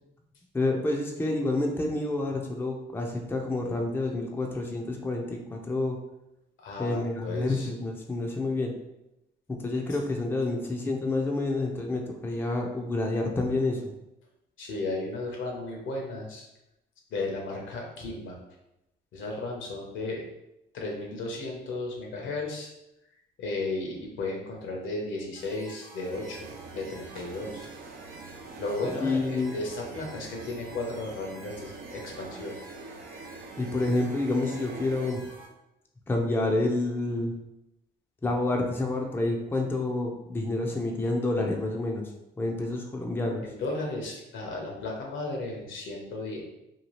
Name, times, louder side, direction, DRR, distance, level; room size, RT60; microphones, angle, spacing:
voice 1, 0.5-6.0 6.8-8.7 9.5-13.9 28.8-29.5 33.6-35.3 36.1-37.3 38.2-42.0 42.4-43.4, left 2 dB, 10° left, 1 dB, 0.4 m, -28 dB
voice 2, 6.6-7.7 14.6-16.5 17.1-18.4 19.1-20.3 20.7-22.7 23.4-27.7 28.6-32.6 43.4-46.4, left 2 dB, 75° left, 0 dB, 0.8 m, -34 dB
sound 1, 25.3-35.5, right 1 dB, 75° right, 0.9 m, -49 dB
sound 2, 26.1-35.1, right 4 dB, 50° right, 0.4 m, -44 dB
2.8 x 2.3 x 3.0 m, 0.88 s
cardioid pair, 90°, 20 cm